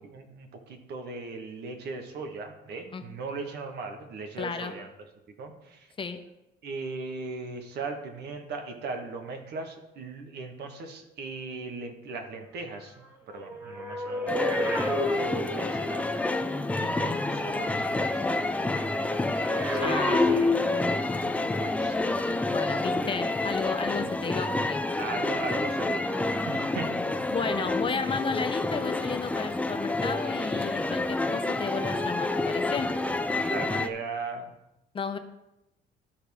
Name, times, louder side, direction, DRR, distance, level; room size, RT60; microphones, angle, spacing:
voice 1, 0.0-4.9 5.4-5.9 6.6-16.4 16.8-19.3 19.6-20.4 21.2-22.0 24.0-24.1 24.9-26.9 33.5-34.5, right 3 dB, 65° right, 4 dB, 1.4 m, -39 dB
voice 2, 4.4-4.7 6.0-6.2 16.8-17.2 19.8-20.3 22.5-24.8 27.3-32.9 34.9-35.2, left 5 dB, 30° left, 7 dB, 0.7 m, -33 dB
sound 1, 13.3-16.1 19.2-21.1 22.0-22.2, left 2 dB, 10° right, 1.3 m, -30 dB
sound 2, 14.3-33.9, left 2 dB, 10° left, 0.4 m, -28 dB
13.0 x 4.8 x 3.5 m, 0.91 s
cardioid pair, 120°, 18 cm